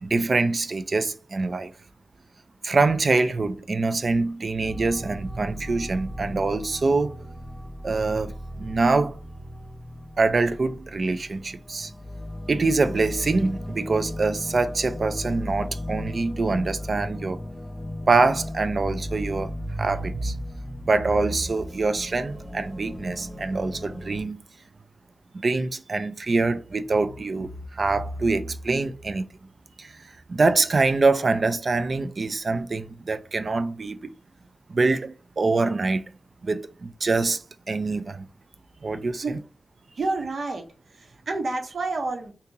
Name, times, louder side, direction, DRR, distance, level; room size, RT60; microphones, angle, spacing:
voice 1, 0.0-1.7 2.6-7.2 7.8-9.2 10.2-11.9 12.5-17.4 18.1-24.4 25.3-29.2 29.8-34.1 34.7-36.0 36.4-38.3 38.8-39.4, right 3 dB, 55° right, 0.4 m, -25 dB
sound 1, 4.6-24.2, left 1 dB, 5° left, 1.1 m, -37 dB
voice 2, 40.0-42.3, right 3 dB, 70° right, 0.9 m, -29 dB
2.9 x 2.8 x 3.6 m
wide cardioid pair, 75°, 0 cm